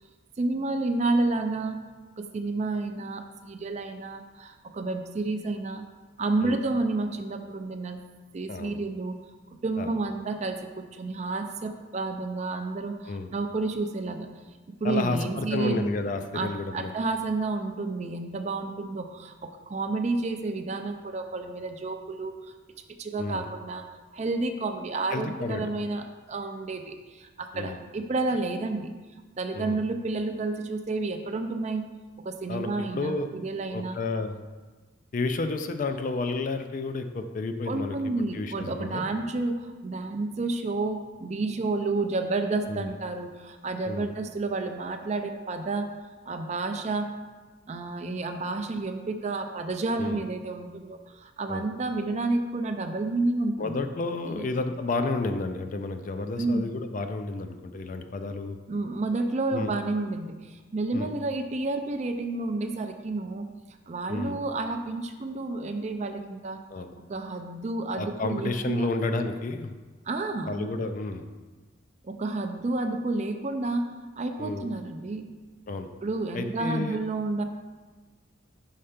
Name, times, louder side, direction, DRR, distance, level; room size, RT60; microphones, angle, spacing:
voice 1, 0.4-1.8 2.2-5.8 6.2-8.0 8.3-9.2 9.6-14.3 14.8-15.9 16.3-22.3 23.0-23.8 24.1-28.9 29.4-31.8 32.2-34.0 37.7-45.9 46.3-47.1 47.7-53.8 54.2-54.5 56.4-56.7 58.7-63.5 63.9-66.6 67.0-68.9 70.1-70.7 72.0-73.9 74.2-75.3 76.0-77.4, right 3 dB, 35° right, 6 dB, 0.4 m, -30 dB
voice 2, 14.8-16.9 23.2-23.5 25.1-25.7 27.5-27.8 29.5-29.8 32.5-33.3 33.7-34.4 35.1-38.0 38.3-39.1 42.7-42.9 43.9-44.1 50.0-50.3 51.5-51.7 53.6-58.6 59.5-59.7 60.9-61.1 64.1-64.3 66.7-66.9 68.0-69.7 70.5-71.2 74.4-74.7 75.7-75.9 76.3-77.0, left 3 dB, 40° left, 7 dB, 0.3 m, -31 dB
5.6 x 4.3 x 5.0 m, 1.3 s
head